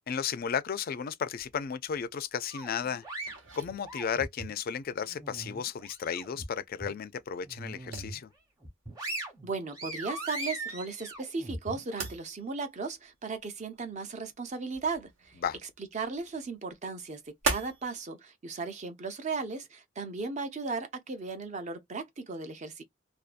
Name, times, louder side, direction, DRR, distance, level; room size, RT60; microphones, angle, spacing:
voice 1, 0.1-3.0 3.6-8.3 15.4-15.6, left 7 dB, 45° left, 0.3 m, -34 dB
sound 1, 1.4-18.0, right 4 dB, 65° right, 0.8 m, -42 dB
sound 2, 2.5-4.5 5.0-6.4 6.8-7.0 7.4-8.2 8.6-12.1, right 2 dB, 20° right, 1.0 m, -40 dB
voice 2, 9.4-15.4 15.9-22.8, right 4 dB, 35° right, 0.5 m, -36 dB
2.6 x 2.2 x 2.4 m
head